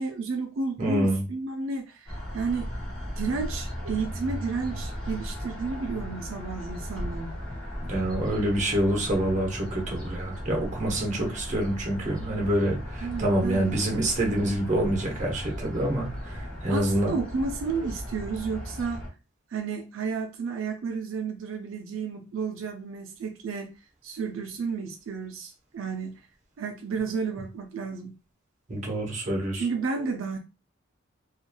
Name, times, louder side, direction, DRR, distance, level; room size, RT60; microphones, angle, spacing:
voice 1, 0.0-2.7 3.2-7.4 13.0-13.8 16.4-16.5 16.7-19.0 19.5-23.7 24.0-26.2 26.6-28.1 29.5-30.4, right 4 dB, 80° right, 0.4 m, -32 dB
voice 2, 0.8-1.2 7.9-17.1 28.7-29.7, right 1 dB, 40° right, 0.9 m, -27 dB
sound 1, 2.1-19.1, equal, 5° left, 1.2 m, -36 dB
2.9 x 2.4 x 2.2 m
head